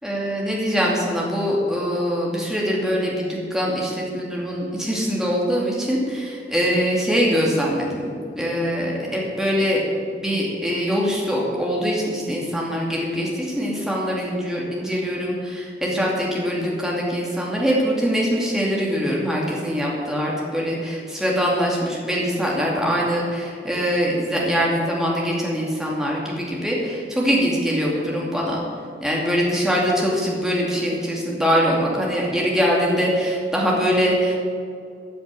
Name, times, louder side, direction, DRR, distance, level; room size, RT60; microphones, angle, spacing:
voice 1, 0.0-9.8 10.1-28.6 29.0-34.4, equal, 5° right, -4 dB, 2.5 m, -23 dB
13.5 x 7.0 x 7.7 m, 2.5 s
head